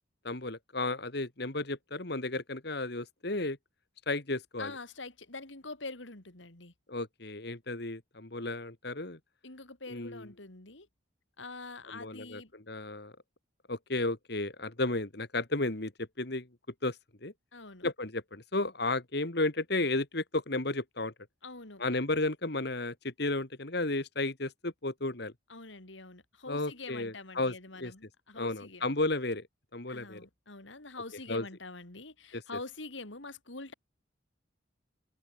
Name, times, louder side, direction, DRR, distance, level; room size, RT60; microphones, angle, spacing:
voice 1, 0.2-3.6 4.1-4.7 6.9-9.2 9.9-10.3 11.9-13.1 13.7-15.9 16.2-16.5 16.8-17.3 17.8-21.1 21.8-25.3 26.5-27.5 27.8-27.9 28.4-29.5 29.7-30.2 31.3-31.4 32.3-32.4, left 2 dB, 55° left, 2.1 m, -33 dB
voice 2, 4.6-6.7 9.4-10.9 11.4-12.5 17.5-17.9 21.4-21.8 25.5-28.9 29.9-33.7, left 3 dB, 75° left, 3.3 m, -45 dB
head